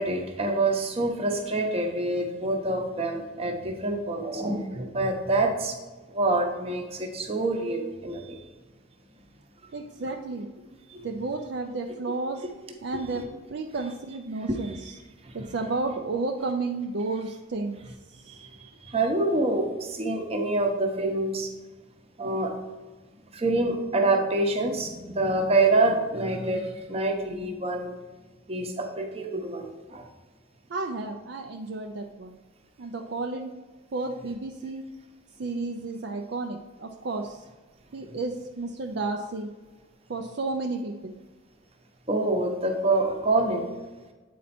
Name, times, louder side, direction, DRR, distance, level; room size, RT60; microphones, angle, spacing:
voice 1, 0.0-5.8 6.1-8.4 10.9-11.1 14.5-14.6 15.2-15.3 18.3-18.5 18.8-21.5 22.2-22.5 23.3-27.9 28.5-30.1 42.1-43.7, right 2 dB, 30° right, 3 dB, 0.8 m, -26 dB
voice 2, 9.7-10.5 11.0-12.4 12.8-15.0 15.3-17.8 18.1-18.4 30.7-32.4 32.8-33.5 33.9-34.8 35.4-37.4 37.9-39.5 40.1-41.1, right 3 dB, 60° right, 3 dB, 0.5 m, -32 dB
8.3 x 4.3 x 4.2 m, 1.3 s
head